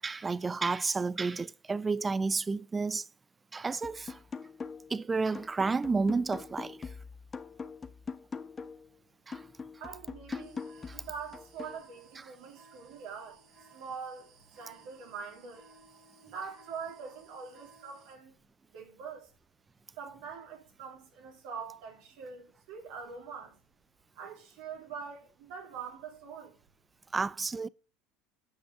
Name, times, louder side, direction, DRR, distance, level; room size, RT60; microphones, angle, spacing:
voice 1, 0.0-3.0 3.5-4.2 4.9-6.9 9.3-9.4 10.9-11.0 27.1-27.7, right 4 dB, 20° right, 0.5 m, -31 dB
sound 1, 3.8-5.0 5.3-8.9 9.3-11.8, left 5 dB, 25° left, 1.1 m, -43 dB
voice 2, 9.8-10.6 10.9-13.4 13.7-15.7 16.2-18.3 18.7-19.3 20.0-23.6 24.1-26.6, right 6 dB, 70° right, 3.6 m, -44 dB
sound 2, 10.4-18.2, right 4 dB, 50° right, 5.0 m, -59 dB
9.3 x 6.2 x 6.1 m
hypercardioid pair, 75°, 0 cm